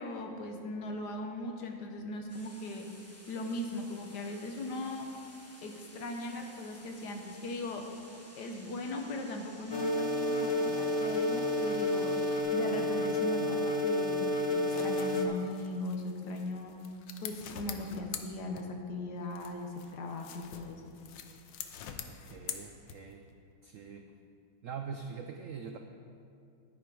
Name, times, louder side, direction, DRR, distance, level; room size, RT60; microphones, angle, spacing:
voice 1, 0.0-2.9 3.3-5.2 5.6-7.9 8.4-12.2 12.5-16.7 17.2-20.9, left 2 dB, 65° left, 3 dB, 1.6 m, -39 dB
sound 1, 2.3-12.4, left 1 dB, 10° left, 1.0 m, -55 dB
sound 2, 9.7-15.3, left 1 dB, 40° left, 0.3 m, -30 dB
sound 3, 14.4-19.0 19.3-23.3, left 8 dB, 85° left, 1.4 m, -45 dB
voice 2, 22.1-23.3 23.6-24.1 24.6-25.8, right 6 dB, 75° right, 5 dB, 0.7 m, -43 dB
11.0 x 9.9 x 5.0 m, 2.5 s
omnidirectional pair, 2.0 m